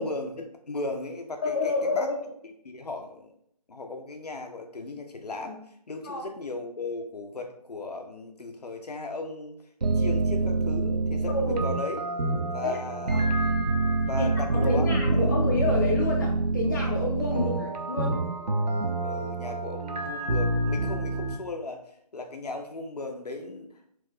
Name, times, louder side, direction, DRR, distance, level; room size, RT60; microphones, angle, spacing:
voice 1, 0.0-2.1 2.6-3.3 3.7-5.6 5.9-9.6 10.0-12.0 12.5-13.5 14.1-14.9 15.2-15.3 17.3-17.6 19.0-21.8 22.1-23.7, left 2 dB, 75° left, 4 dB, 0.6 m, -36 dB
voice 2, 1.4-2.2 6.0-6.2 11.3-11.6 12.6-12.8 13.1-13.3 14.2-18.1, left 3 dB, 30° left, -1 dB, 0.6 m, -29 dB
sound 1, 9.8-21.4, right 2 dB, 85° right, 0.6 m, -26 dB
2.9 x 2.2 x 3.5 m, 0.70 s
figure-of-eight pair, 160°, 21 cm